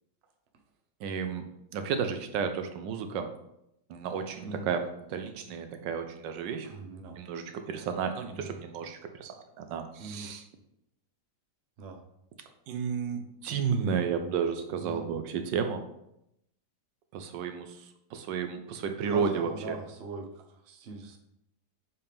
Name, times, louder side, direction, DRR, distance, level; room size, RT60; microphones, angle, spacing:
voice 1, 1.0-1.5 1.7-3.3 3.9-4.8 5.1-6.7 7.2-10.4 12.7-15.8 17.1-17.8 18.1-19.8, right 6 dB, 80° right, 7 dB, 1.3 m, -32 dB
voice 2, 6.6-7.2 8.3-8.5 10.0-10.3 11.8-12.0 14.8-15.1 19.1-21.2, right 3 dB, 50° right, 3 dB, 0.8 m, -41 dB
7.7 x 4.1 x 3.5 m, 0.81 s
omnidirectional pair, 1.9 m